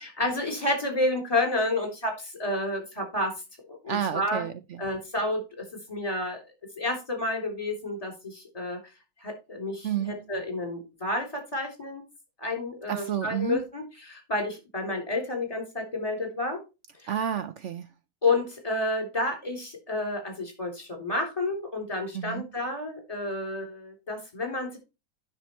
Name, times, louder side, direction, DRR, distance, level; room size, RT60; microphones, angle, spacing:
voice 1, 0.0-3.3 3.7-4.4 4.8-5.4 5.9-6.4 6.8-8.8 9.2-12.0 12.4-16.6 17.0-17.1 18.2-24.8, left 2 dB, 20° left, 3.6 m, -30 dB
voice 2, 3.9-4.8 9.8-10.2 12.9-13.6 17.1-17.9 22.1-22.5, right 9 dB, 85° right, 0.6 m, -30 dB
10.0 x 6.1 x 4.5 m
omnidirectional pair, 2.0 m